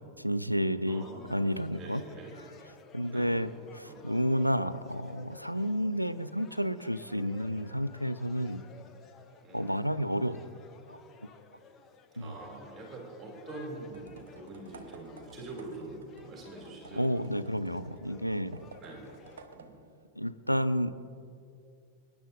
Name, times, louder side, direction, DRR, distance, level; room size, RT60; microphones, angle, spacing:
voice 1, 0.2-2.0 2.9-8.6 9.5-10.4 10.9-11.0 12.2-12.3 16.9-18.6 20.2-21.0, equal, 90° right, 15 dB, 0.4 m, -31 dB
sound 1, 0.8-19.4, left 5 dB, 25° left, 0.8 m, -56 dB
voice 2, 0.9-1.5 1.7-2.3 3.1-3.5 3.9-4.0 9.4-9.7 12.1-17.6 18.8-19.1 19.5-19.7, right 2 dB, 25° right, -3 dB, 2.7 m, -45 dB
sound 2, 13.9-20.1, right 4 dB, 65° right, 1.0 m, -54 dB
25.5 x 10.0 x 2.6 m, 2.4 s
figure-of-eight pair, 90°, 0 cm